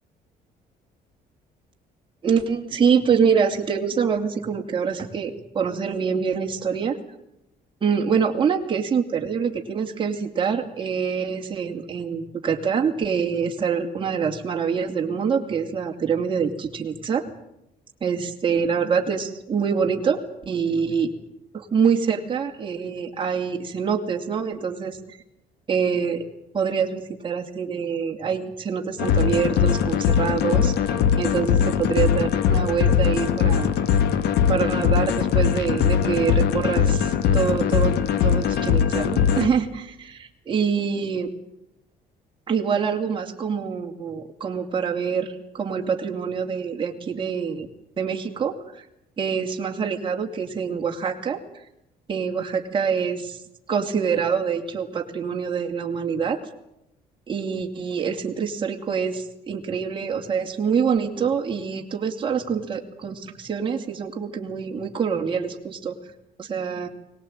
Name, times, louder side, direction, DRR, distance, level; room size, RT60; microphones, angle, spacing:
voice 1, 2.2-7.0 7.8-17.2 18.0-21.1 21.5-25.2 25.7-26.2 26.5-30.8 31.2-33.7 34.5-38.0 38.2-41.3 42.5-47.7 48.0-48.8 49.2-51.4 52.1-53.4 53.7-56.4 57.3-65.9 66.4-66.9, right 6 dB, 30° right, 1 dB, 2.7 m, -25 dB
sound 1, 29.0-39.5, left 8 dB, 75° left, 1.6 m, -21 dB
22.0 x 19.0 x 8.9 m, 0.85 s
cardioid pair, 110°, 17 cm